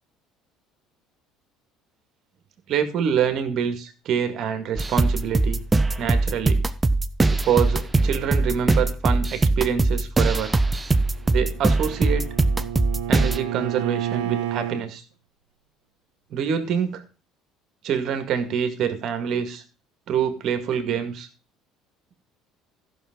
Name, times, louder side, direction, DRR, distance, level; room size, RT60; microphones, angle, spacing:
voice 1, 2.7-5.6 6.0-6.7 7.3-10.5 11.3-12.3 13.1-15.0 16.3-17.0 17.8-19.6 20.1-21.3, right 8 dB, 55° right, 8 dB, 2.0 m, -26 dB
sound 1, 4.8-13.4, right 2 dB, 20° right, 0.9 m, -21 dB
Bowed string instrument, 11.1-14.9, right 12 dB, 80° right, 1.1 m, -31 dB
15.0 x 6.5 x 3.8 m, 0.35 s
hypercardioid pair, 65°, 0 cm